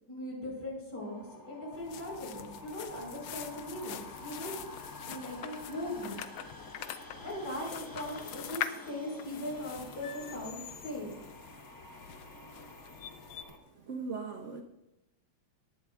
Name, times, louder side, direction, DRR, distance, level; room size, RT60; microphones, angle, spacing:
voice 1, 0.1-4.6 5.1-6.2 7.2-11.1, left 1 dB, 50° left, -3 dB, 6.1 m, -39 dB
sound 1, 1.0-13.6, left 2 dB, 30° left, 0.4 m, -50 dB
sound 2, 1.7-13.4, left 10 dB, 70° left, 1.0 m, -44 dB
voice 2, 13.9-14.6, right 4 dB, 65° right, 4 dB, 0.7 m, -38 dB
18.5 x 12.0 x 2.4 m, 0.90 s
omnidirectional pair, 2.3 m